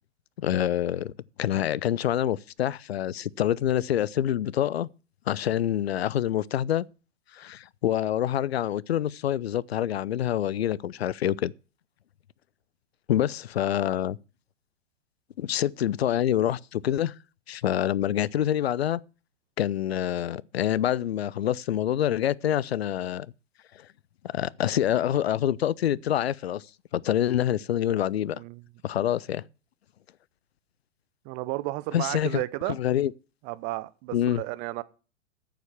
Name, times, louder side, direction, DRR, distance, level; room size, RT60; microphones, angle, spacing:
voice 1, 0.4-1.1 1.4-4.9 5.3-6.9 7.3-11.5 13.1-14.2 15.4-17.1 17.5-19.0 19.6-23.3 24.2-26.6 26.9-28.4 28.8-29.4 31.9-32.4 32.7-33.1 34.1-34.4, left 11 dB, 55° left, 0.5 m, -26 dB
voice 2, 31.3-32.8 33.4-34.8, right 19 dB, 20° right, 0.6 m, -32 dB
9.1 x 7.2 x 7.2 m
figure-of-eight pair, 110°, 37 cm